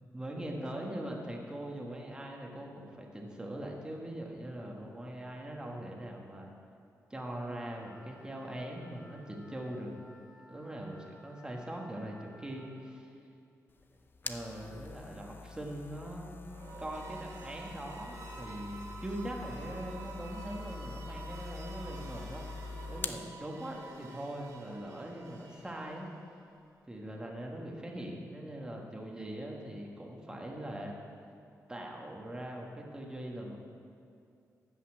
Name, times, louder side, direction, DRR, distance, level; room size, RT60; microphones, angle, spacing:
voice 1, 0.1-6.5 7.1-9.9 10.5-13.1 14.2-16.3 16.8-22.5 22.9-26.1 26.9-31.0 31.7-33.6, right 1 dB, 15° right, 0 dB, 1.4 m, -41 dB
Wind instrument woodwind instrument, 7.5-12.7, left 1 dB, 85° left, 3.5 m, -59 dB
sound 1, 13.7-23.3, left 4 dB, 35° left, 0.5 m, -45 dB
sound 2, 16.4-26.4, right 4 dB, 70° right, 1.4 m, -49 dB
12.5 x 5.6 x 8.4 m, 2.4 s
wide cardioid pair, 135°, 6 cm